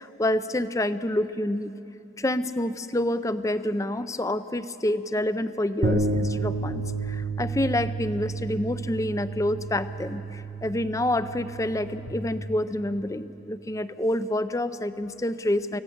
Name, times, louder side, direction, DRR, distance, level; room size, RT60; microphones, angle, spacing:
voice 1, 0.0-1.7 2.2-15.8, left 1 dB, 15° left, 13 dB, 0.5 m, -28 dB
sound 1, 5.8-12.1, right 2 dB, 60° right, 1.2 m, -30 dB
24.5 x 16.5 x 8.0 m, 2.8 s
head